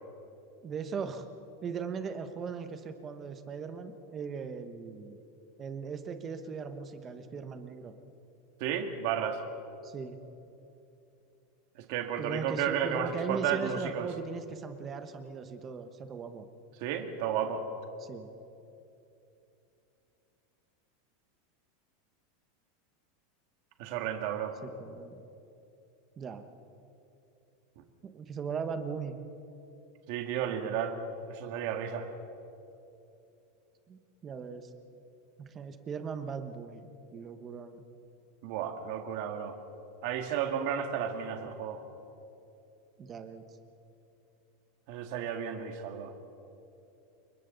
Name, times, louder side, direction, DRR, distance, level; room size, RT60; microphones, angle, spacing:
voice 1, 0.6-1.3 1.6-5.2 5.6-7.9 9.8-10.2 12.2-16.5 18.0-18.3 24.6-25.2 26.2-26.5 28.0-29.2 33.9-34.7 35.4-37.8 43.0-43.5, right 5 dB, 20° right, 8 dB, 1.1 m, -39 dB
voice 2, 8.6-9.4 11.8-14.1 16.8-17.6 23.8-24.5 30.1-31.0 31.3-32.1 38.4-39.6 40.0-41.8 44.9-46.1, right 8 dB, 50° right, 5 dB, 2.0 m, -33 dB
29.5 x 23.5 x 4.0 m, 2.8 s
supercardioid pair, 170°, 0 cm